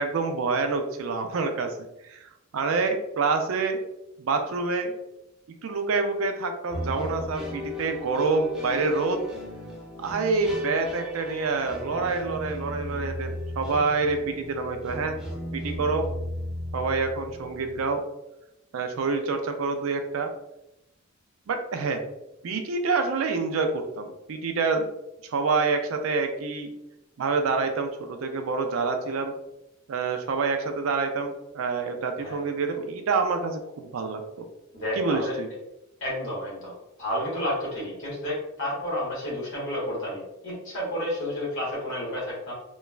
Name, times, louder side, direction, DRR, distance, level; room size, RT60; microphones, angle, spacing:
voice 1, 0.0-1.7 2.0-3.8 4.2-4.9 5.6-9.2 10.0-15.2 15.5-16.1 16.7-18.0 18.7-20.3 21.5-22.0 22.4-24.9 25.3-26.7 27.2-29.3 29.9-34.5 35.0-35.5, right 4 dB, 85° right, 6 dB, 0.4 m, -27 dB
sound 1, 6.7-17.8, left 1 dB, 5° right, 0.6 m, -36 dB
voice 2, 34.7-35.3 36.0-36.7 37.0-42.5, left 1 dB, 70° left, -6 dB, 1.1 m, -31 dB
3.1 x 2.2 x 2.3 m, 0.89 s
head